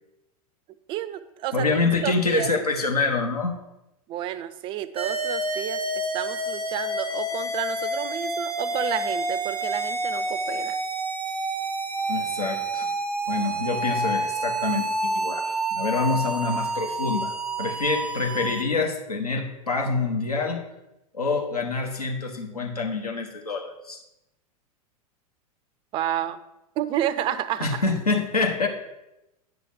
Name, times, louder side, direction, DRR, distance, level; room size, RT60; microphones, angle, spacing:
voice 1, 0.9-1.7 2.0-2.5 4.1-10.8 25.9-26.4 26.8-27.8, right 11 dB, 25° right, 14 dB, 0.4 m, -30 dB
voice 2, 1.5-3.6 12.1-12.9 13.3-17.3 17.6-20.6 21.1-24.0 27.6-28.7, left 4 dB, 80° left, 2 dB, 1.2 m, -26 dB
sound 1, 5.0-18.6, right 2 dB, 90° right, 0.6 m, -28 dB
9.2 x 5.9 x 3.6 m, 0.90 s
figure-of-eight pair, 90°, 19 cm